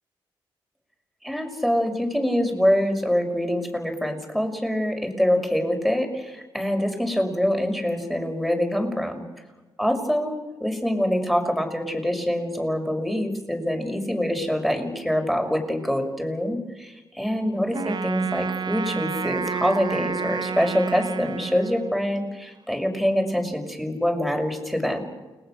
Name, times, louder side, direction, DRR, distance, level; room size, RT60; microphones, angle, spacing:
voice 1, 1.2-9.2 9.8-25.0, equal, ahead, 4 dB, 6.3 m, -25 dB
Wind instrument woodwind instrument, 17.7-22.1, right 5 dB, 45° right, 0.8 m, -30 dB
30.0 x 20.0 x 6.6 m, 1.2 s
supercardioid pair, 55°, 10 cm